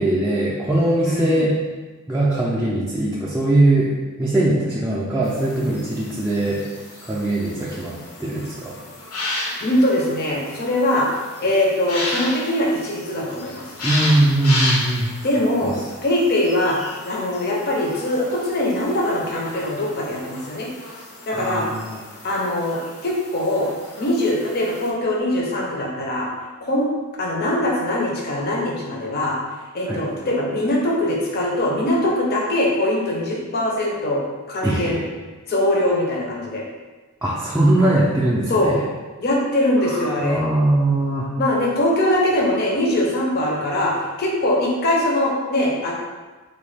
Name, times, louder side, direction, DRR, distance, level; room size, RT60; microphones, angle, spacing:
voice 1, 0.0-1.6 2.1-6.6 7.0-8.8 13.8-15.1 15.6-15.8 21.3-22.0 29.9-30.0 34.6-35.0 37.2-38.8 39.9-41.3, right 1 dB, 10° right, -7 dB, 0.4 m, -21 dB
voice 2, 1.0-1.4 9.6-11.1 11.4-13.6 15.2-15.7 16.0-16.8 17.0-20.7 21.3-21.6 22.2-23.7 24.0-26.3 26.6-26.9 27.2-29.4 29.7-34.2 34.5-35.0 35.5-36.6 38.5-38.7 39.2-40.4 41.4-45.9, left 1 dB, 45° left, -2 dB, 0.5 m, -22 dB
sound 1, 5.2-24.9, left 2 dB, 85° left, 0.7 m, -33 dB
3.6 x 2.2 x 3.2 m, 1.3 s
head